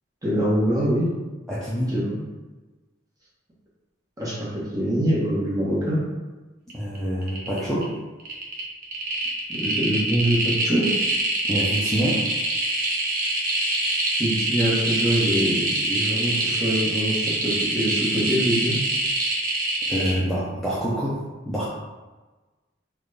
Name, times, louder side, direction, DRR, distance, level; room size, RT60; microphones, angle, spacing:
voice 1, 0.2-1.1 1.9-2.2 4.2-4.5 4.7-6.0 9.5-10.9 14.2-18.7, equal, 20° right, -7 dB, 1.0 m, -24 dB
voice 2, 1.5-2.0 6.7-8.0 11.4-12.3 19.9-21.7, equal, ahead, -9 dB, 0.5 m, -26 dB
sound 1, 6.7-7.0 7.2-7.8 8.2-20.1, right 2 dB, 45° right, 0.7 m, -25 dB
3.8 x 2.3 x 3.3 m, 1.2 s
head